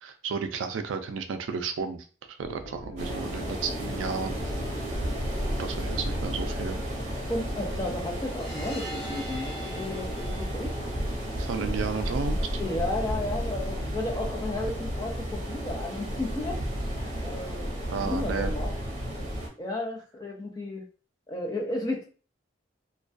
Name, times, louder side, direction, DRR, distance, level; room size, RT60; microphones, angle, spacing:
voice 1, 0.0-4.4 5.6-6.9 11.4-12.4 17.9-18.5, right 5 dB, 85° right, 7 dB, 0.4 m, -33 dB
sound 1, 2.4-10.5, equal, 70° left, 0.7 m, -44 dB
sound 2, 3.0-19.5, equal, 35° right, 0.7 m, -32 dB
voice 2, 7.3-10.8 11.6-11.8 12.6-16.6 17.0-18.7 19.6-20.8 21.3-22.1, left 2 dB, 20° left, 0 dB, 0.4 m, -33 dB
sound 3, 8.1-11.8, right 1 dB, 5° right, 0.9 m, -43 dB
2.2 x 2.2 x 2.5 m, 0.38 s
head